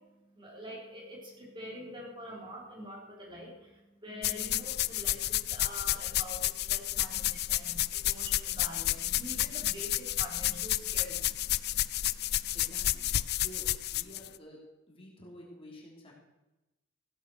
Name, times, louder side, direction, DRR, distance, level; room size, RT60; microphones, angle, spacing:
voice 1, 0.0-12.5, equal, 25° right, -2 dB, 3.8 m, -46 dB
sound 1, 4.2-14.3, left 14 dB, 55° left, 0.4 m, -31 dB
voice 2, 12.5-13.1 13.4-14.6 14.9-16.1, equal, 30° left, -2 dB, 3.1 m, -50 dB
16.0 x 8.2 x 6.5 m, 1.0 s
head